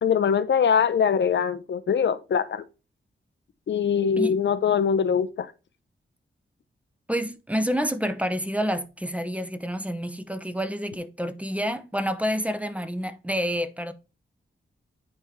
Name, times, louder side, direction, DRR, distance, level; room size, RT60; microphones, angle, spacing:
voice 1, 0.0-2.6 3.7-5.5, left 7 dB, 65° left, 0.6 m, -22 dB
voice 2, 7.1-13.9, equal, 5° right, 0.6 m, -28 dB
9.4 x 3.5 x 2.8 m
cardioid pair, 85°, 20 cm